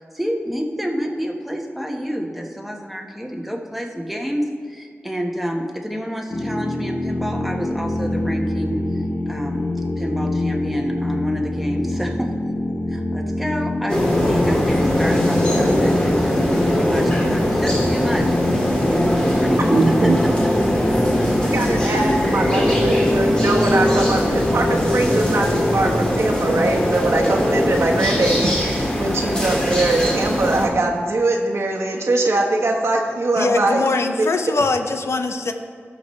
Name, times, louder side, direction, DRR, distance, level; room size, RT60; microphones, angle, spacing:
voice 1, 0.1-9.7 10.0-12.3 12.9-18.3 18.9-19.6 20.0-20.8, equal, 5° right, 1 dB, 1.2 m, -28 dB
sound 1, 6.3-26.0, left 1 dB, 60° left, 1.3 m, -25 dB
sound 2, 13.9-30.7, equal, 20° left, 2.0 m, -20 dB
voice 2, 19.4-20.2 21.5-33.8, right 2 dB, 80° right, 0 dB, 1.2 m, -21 dB
voice 3, 33.3-35.5, left 3 dB, 80° left, 6 dB, 0.7 m, -22 dB
17.5 x 6.1 x 3.2 m, 2.1 s
wide cardioid pair, 90°, 5 cm